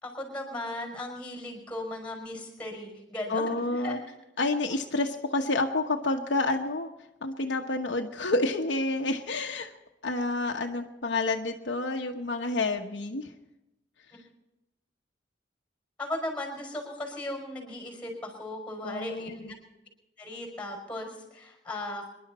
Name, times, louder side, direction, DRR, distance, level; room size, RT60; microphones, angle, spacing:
voice 1, 0.0-4.0 16.0-19.6 20.2-22.1, left 1 dB, 5° left, 2 dB, 5.3 m, -37 dB
voice 2, 3.3-4.0 4.4-6.9 7.2-9.7 10.0-13.3 18.8-19.5, left 2 dB, 75° left, 3 dB, 1.1 m, -29 dB
26.0 x 11.5 x 4.3 m, 0.95 s
head